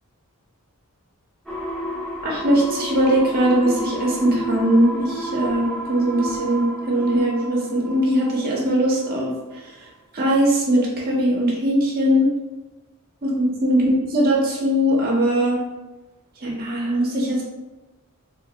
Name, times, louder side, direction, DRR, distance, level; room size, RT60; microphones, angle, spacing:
sound 1, 1.5-9.1 9.5-9.6, equal, ahead, 0.6 m, -32 dB
voice 1, 2.2-9.3 10.1-12.3 13.2-15.6 16.4-17.4, right 1 dB, 45° right, -3 dB, 0.6 m, -20 dB
3.1 x 2.4 x 2.7 m, 1.1 s
head